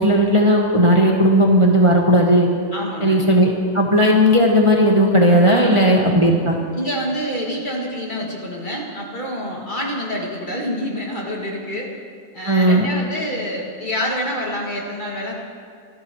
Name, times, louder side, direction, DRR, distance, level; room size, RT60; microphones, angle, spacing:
voice 1, 0.0-2.5 3.0-6.6 12.5-12.9, equal, 25° right, -1 dB, 1.1 m, -15 dB
voice 2, 2.7-3.2 5.4-5.9 6.7-11.9 12.3-15.3, equal, 40° left, -3 dB, 2.5 m, -27 dB
26.0 x 12.0 x 3.1 m, 2.3 s
omnidirectional pair, 1.4 m